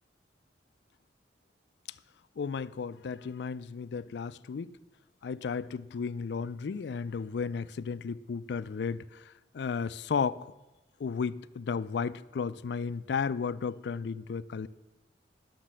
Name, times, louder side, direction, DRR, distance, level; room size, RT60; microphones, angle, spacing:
voice 1, 2.4-4.8 5.2-10.5 11.0-14.7, left 5 dB, 75° left, 0.4 m, -34 dB
10.0 x 6.6 x 7.4 m
head